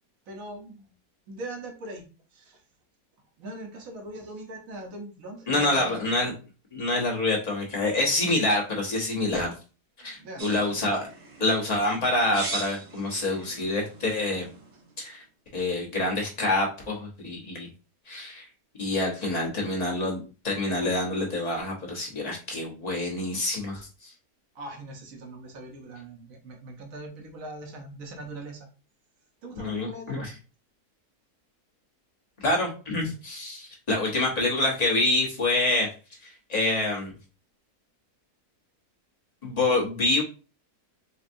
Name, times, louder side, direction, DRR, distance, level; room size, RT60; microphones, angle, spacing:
voice 1, 0.3-0.9 1.3-2.1 2.3-2.6 3.4-6.2 10.0-10.9 24.5-28.7 29.4-30.3, right 1 dB, 60° right, 3 dB, 1.3 m, -41 dB
voice 2, 5.5-6.3 6.7-9.6 10.0-11.1 11.4-14.5 15.0-15.2 15.5-17.7 18.1-18.5 18.8-24.1 29.6-30.3 32.4-35.9 36.5-37.1 39.4-40.2, left 2 dB, 30° left, -2 dB, 1.1 m, -26 dB
sound 1, 10.4-14.9, right 2 dB, 45° right, 0.4 m, -40 dB
4.3 x 2.4 x 2.6 m, 0.33 s
omnidirectional pair, 1.7 m